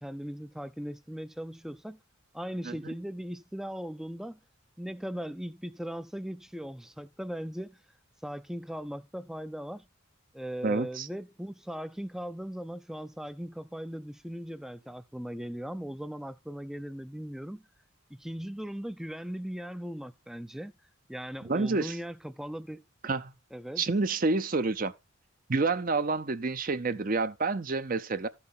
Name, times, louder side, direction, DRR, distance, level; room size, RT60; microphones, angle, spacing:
voice 1, 0.0-2.0 2.3-4.4 4.8-7.8 8.2-9.9 10.3-17.7 18.1-20.7 21.1-22.8 23.5-23.8, equal, ahead, 0.5 m, -38 dB
voice 2, 10.6-11.1 21.4-22.0 23.0-23.3 23.8-24.9 25.5-28.3, right 3 dB, 40° right, 0.7 m, -28 dB
14.0 x 5.9 x 3.7 m
head